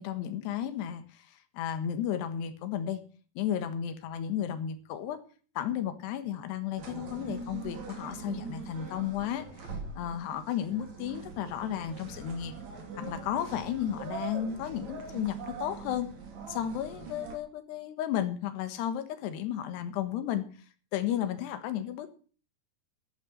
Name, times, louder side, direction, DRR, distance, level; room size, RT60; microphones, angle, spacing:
voice 1, 0.0-3.0 3.4-5.2 5.6-12.5 13.0-16.1 16.5-20.4 20.9-22.1, left 10 dB, 75° left, 10 dB, 3.6 m, -33 dB
sound 1, 6.8-17.4, right 5 dB, 45° right, 3.9 m, -42 dB
12.5 x 11.0 x 8.0 m, 0.41 s
omnidirectional pair, 5.0 m